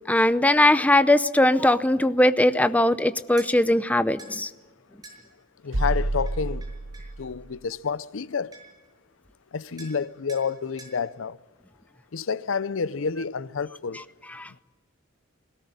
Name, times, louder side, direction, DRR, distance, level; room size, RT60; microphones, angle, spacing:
voice 1, 0.1-4.5 14.4-14.5, left 1 dB, 10° left, 0.6 m, -20 dB
sound 1, 3.4-3.5 4.2-4.4 5.0-5.2 6.3-7.1 8.2-8.3 8.5-8.9 9.8-10.0 10.3-10.5 10.8-11.0, right 3 dB, 20° right, 6.5 m, -46 dB
voice 2, 5.6-6.6 7.2-8.5 9.5-11.4 12.1-14.0, left 5 dB, 75° left, 0.6 m, -29 dB
sound 2, 5.7-7.6, right 2 dB, 70° right, 1.3 m, -29 dB
21.0 x 18.0 x 9.5 m
head